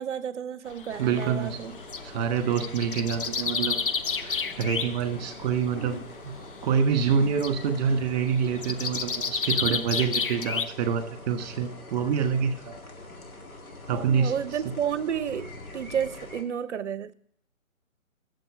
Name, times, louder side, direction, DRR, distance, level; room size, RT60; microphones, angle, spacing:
voice 1, 0.0-1.8 13.9-17.1, right 8 dB, 55° right, 0.7 m, -31 dB
sound 1, 0.7-2.1 2.4-5.1 5.3-5.8 6.4-6.9 7.2-10.7, left 5 dB, 40° left, 0.5 m, -30 dB
sound 2, 0.9-16.4, left 2 dB, 85° left, 2.2 m, -44 dB
voice 2, 1.0-1.6 2.0-3.8 4.1-6.0 6.6-12.8 13.9-14.3, right 6 dB, 30° right, 1.6 m, -26 dB
9.1 x 7.0 x 6.7 m
figure-of-eight pair, 145°, 42 cm